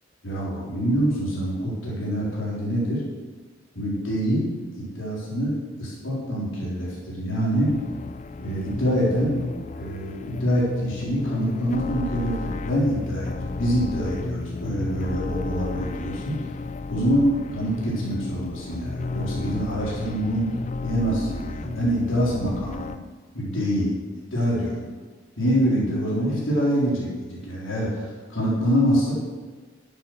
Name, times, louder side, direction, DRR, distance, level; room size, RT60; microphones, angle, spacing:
voice 1, 0.2-3.0 3.7-4.5 4.7-7.7 8.4-9.4 9.7-16.5 16.9-20.5 20.8-23.0 23.3-23.9 24.3-24.9 25.4-29.1, equal, 85° left, -6 dB, 3.9 m, -25 dB
sound 1, 7.7-23.0, left 3 dB, 40° left, 0.4 m, -32 dB
11.5 x 8.6 x 6.4 m, 1.4 s
head